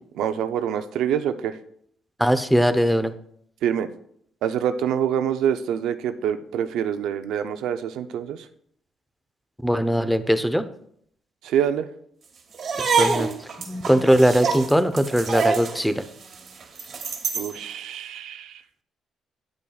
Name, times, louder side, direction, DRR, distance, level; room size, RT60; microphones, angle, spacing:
voice 1, 0.2-1.6 3.6-3.9 4.4-8.5 11.4-11.9 17.3-18.6, right 9 dB, 85° right, 10 dB, 0.5 m, -26 dB
voice 2, 2.2-3.1 9.6-10.7 12.8-13.3 13.6-16.0, equal, ahead, 10 dB, 0.6 m, -20 dB
sound 1, 12.5-17.6, right 5 dB, 55° right, 1.1 m, -26 dB
8.9 x 8.3 x 2.3 m, 0.66 s
cardioid pair, 90°, 0 cm